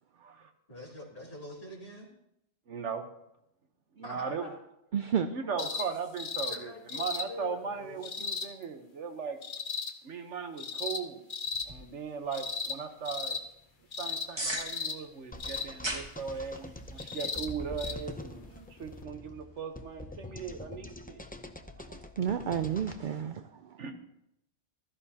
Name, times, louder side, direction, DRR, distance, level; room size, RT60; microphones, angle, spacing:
voice 1, 0.7-2.1 4.0-4.6 6.5-8.0, left 1 dB, 30° left, 3.2 m, -45 dB
voice 2, 2.7-3.0 4.0-4.5 5.3-9.4 10.0-11.2 11.6-13.4 14.0-21.2 23.8-23.9, right 6 dB, 80° right, 1.4 m, -38 dB
voice 3, 4.9-5.3 22.2-23.8, right 8 dB, 55° right, 0.6 m, -31 dB
sound 1, 5.6-5.9 6.2-6.6 6.9-7.3 8.0-8.5 9.4-9.9 10.6-11.0 11.3-11.7 12.3-12.8 13.0-13.4 13.9-14.3 14.5-15.0 15.4-15.7 17.0-17.5 17.8-17.9 19.0-19.1, left 5 dB, 50° left, 1.0 m, -35 dB
sound 2, 11.5-22.0, right 1 dB, 25° right, 1.5 m, -45 dB
sound 3, 15.3-23.0, left 1 dB, 10° left, 0.4 m, -44 dB
15.5 x 13.5 x 2.8 m
omnidirectional pair, 1.2 m